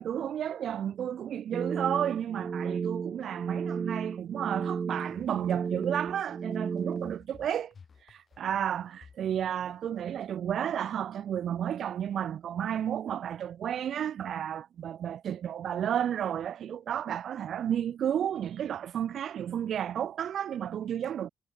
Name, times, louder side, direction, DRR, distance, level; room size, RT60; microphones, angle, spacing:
voice 1, 0.0-7.7 8.1-21.3, right 9 dB, 65° right, 2.3 m, -32 dB
sound 1, 1.5-7.2, right 6 dB, 45° right, 0.3 m, -34 dB
sound 2, 4.7-10.0, left 5 dB, 45° left, 6.7 m, -57 dB
cardioid pair, 85°, 0 cm